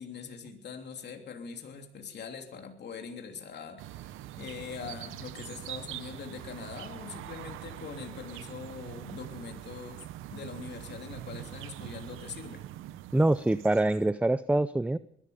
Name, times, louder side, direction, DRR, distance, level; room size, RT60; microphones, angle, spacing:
voice 1, 0.0-10.0 10.3-12.6, left 6 dB, 60° left, 4 dB, 3.1 m, -43 dB
sound 1, 3.8-14.1, right 14 dB, 90° right, 0.8 m, -43 dB
voice 2, 13.1-15.0, right 2 dB, 5° right, 15 dB, 0.5 m, -25 dB
21.0 x 12.5 x 5.1 m, 0.74 s
cardioid pair, 90°, 20 cm